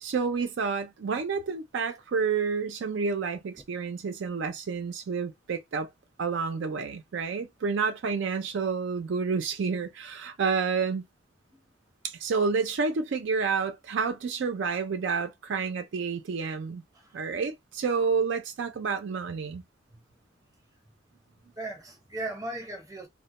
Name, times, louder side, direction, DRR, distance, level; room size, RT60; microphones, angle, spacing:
voice 1, 0.0-5.9 6.2-11.0 12.0-16.8 17.1-19.6, right 5 dB, 65° right, 0.4 m, -29 dB
voice 2, 21.6-23.1, right 2 dB, 15° right, 0.6 m, -38 dB
2.1 x 2.1 x 2.9 m
head